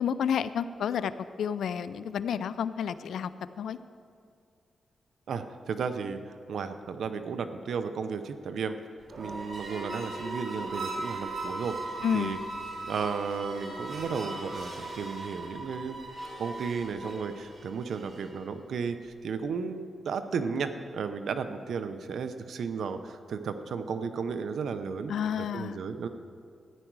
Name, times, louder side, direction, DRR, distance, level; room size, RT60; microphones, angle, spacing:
voice 1, 0.0-3.3 3.6-3.8 12.0-12.3 25.1-25.8, left 8 dB, 85° left, 14 dB, 0.4 m, -30 dB
voice 2, 5.3-6.2 6.5-8.7 9.2-12.4 12.8-16.0 16.4-26.1, right 5 dB, 75° right, 9 dB, 0.7 m, -34 dB
sound 1, 9.0-18.4, right 2 dB, 50° right, 2.1 m, -38 dB
14.0 x 10.0 x 4.7 m, 2.4 s
cardioid pair, 95°, 0 cm